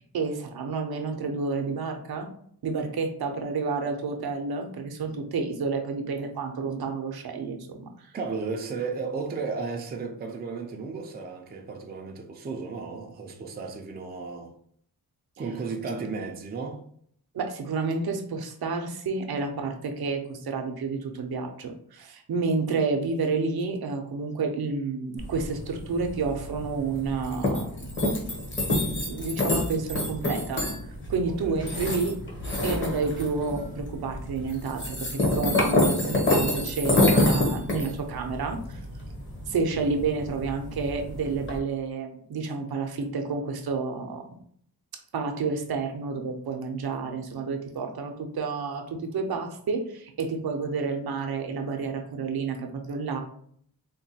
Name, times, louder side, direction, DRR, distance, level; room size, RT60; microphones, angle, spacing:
voice 1, 0.0-2.3 2.6-7.9 17.3-28.3 29.0-30.6 31.1-32.2 32.6-38.8 39.5-44.4 45.1-53.2, right 4 dB, 75° right, 0.6 m, -30 dB
voice 2, 8.1-14.5 15.4-16.8 31.3-31.6, right 4 dB, 25° right, 0.4 m, -34 dB
sound 1, 25.2-41.6, left 1 dB, 30° left, 0.8 m, -28 dB
3.8 x 2.2 x 2.7 m
wide cardioid pair, 170°, 38 cm